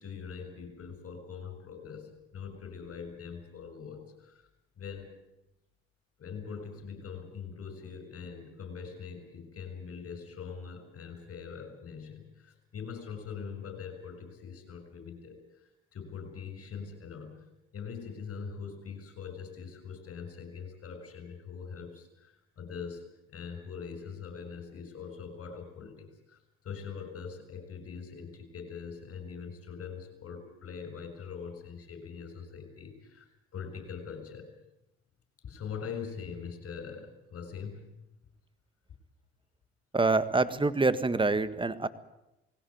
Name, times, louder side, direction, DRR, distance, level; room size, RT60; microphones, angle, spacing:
voice 1, 0.0-4.5 4.8-5.1 6.2-17.5 17.7-23.0 23.3-26.4 26.6-34.5 35.4-37.9, left 6 dB, 50° left, 8 dB, 6.8 m, -42 dB
voice 2, 39.9-41.9, right 3 dB, 15° right, 14 dB, 1.7 m, -26 dB
20.0 x 17.0 x 9.6 m, 0.92 s
hypercardioid pair, 65°, 30 cm